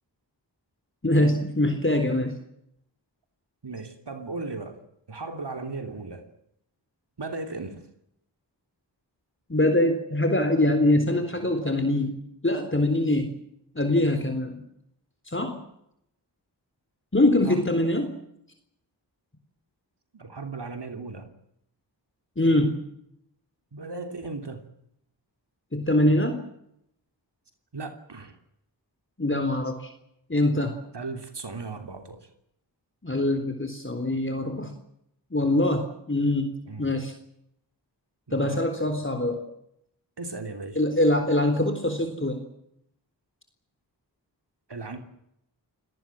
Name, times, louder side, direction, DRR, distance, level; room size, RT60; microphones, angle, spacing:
voice 1, 1.0-2.3 9.5-12.2 12.4-13.3 13.8-14.6 15.3-15.6 17.1-18.2 22.4-22.8 25.7-26.4 29.2-29.9 30.3-30.8 33.0-34.7 35.3-36.5 36.8-37.1 38.3-39.4 40.8-42.4, left 1 dB, 25° left, 6 dB, 3.8 m, -23 dB
voice 2, 3.6-4.8 5.1-6.3 7.2-7.9 11.4-11.7 17.4-17.6 20.1-21.3 23.7-24.7 27.7-28.4 30.9-32.3 36.7-36.9 38.3-38.6 40.2-40.8 44.7-45.0, right 3 dB, 65° right, 7 dB, 3.2 m, -36 dB
29.5 x 18.0 x 7.6 m, 0.78 s
cardioid pair, 45°, 44 cm